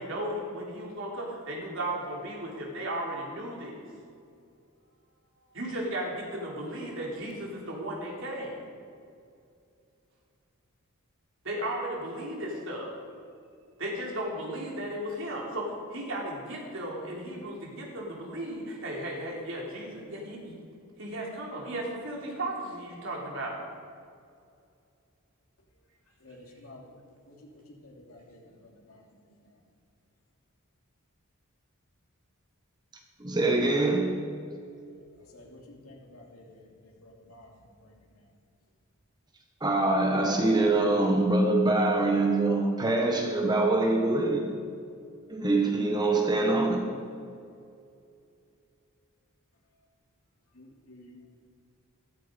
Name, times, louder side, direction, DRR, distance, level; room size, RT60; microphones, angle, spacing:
voice 1, 0.0-3.8 5.5-8.6 11.4-13.0 13.8-20.6 21.0-23.6, right 1 dB, 60° right, -2 dB, 3.6 m, -35 dB
voice 2, 26.2-26.9 27.3-29.5 35.2-38.3 50.5-51.3, left 1 dB, 75° left, -1 dB, 3.0 m, -52 dB
voice 3, 33.2-34.2 39.6-44.5 45.3-46.9, right 2 dB, 20° right, 2 dB, 1.2 m, -24 dB
15.0 x 14.5 x 5.2 m, 2.4 s
head